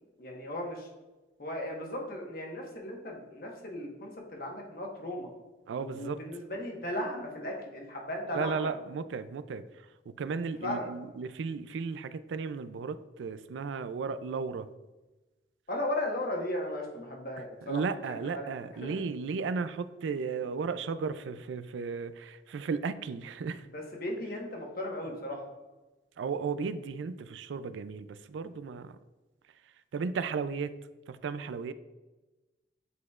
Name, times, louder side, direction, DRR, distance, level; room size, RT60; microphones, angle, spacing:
voice 1, 0.2-0.9 1.4-5.3 5.7-8.7 10.6-10.9 15.7-18.5 18.8-19.0 23.7-25.5, left 1 dB, 50° left, 0 dB, 1.2 m, -36 dB
voice 2, 5.7-6.2 8.4-9.7 10.1-14.7 17.7-23.7 26.2-29.0 29.9-30.7 31.1-31.7, right 5 dB, 90° right, 13 dB, 0.3 m, -35 dB
8.1 x 4.9 x 2.4 m, 1.1 s
head